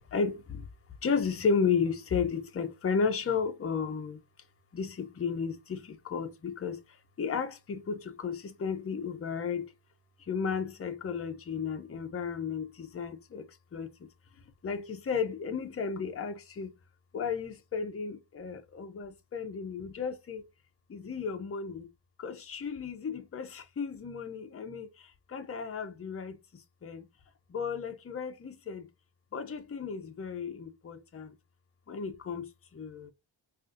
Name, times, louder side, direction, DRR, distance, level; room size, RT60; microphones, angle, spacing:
voice 1, 0.1-0.7 1.0-4.2 4.7-6.8 7.2-9.7 10.3-13.9 14.6-16.7 17.1-20.4 20.9-21.9 22.2-26.4 26.8-27.0 27.5-28.9 29.3-31.3 31.9-33.1, left 6 dB, 30° left, 0.5 m, -33 dB
3.7 x 2.5 x 2.5 m
wide cardioid pair, 140°, 48 cm